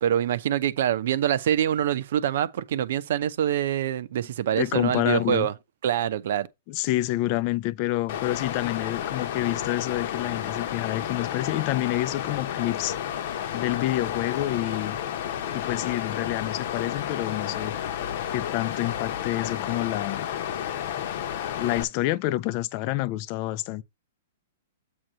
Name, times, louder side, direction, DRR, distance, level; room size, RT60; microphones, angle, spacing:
voice 1, 0.0-5.5 5.8-6.5, right 10 dB, 65° right, 0.8 m, -25 dB
voice 2, 4.5-5.5 6.7-13.0 13.5-15.0 15.5-17.8 18.3-20.3 21.6-23.8, left 16 dB, 45° left, 0.6 m, -28 dB
Water, 8.1-21.8, left 10 dB, 60° left, 1.0 m, -31 dB
7.8 x 3.0 x 6.2 m
hypercardioid pair, 130°, 0 cm